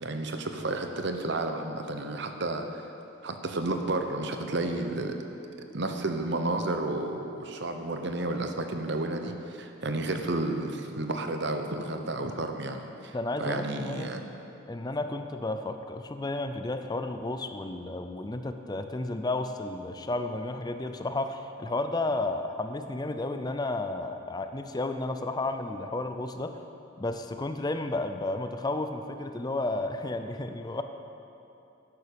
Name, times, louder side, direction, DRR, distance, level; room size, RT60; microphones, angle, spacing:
voice 1, 0.0-2.9 3.2-5.2 5.7-14.2, right 2 dB, 60° right, 5 dB, 1.0 m, -31 dB
voice 2, 13.1-14.2 14.7-26.6 27.0-30.8, left 2 dB, 20° left, 7 dB, 0.5 m, -32 dB
11.0 x 10.5 x 6.9 m, 2.8 s
head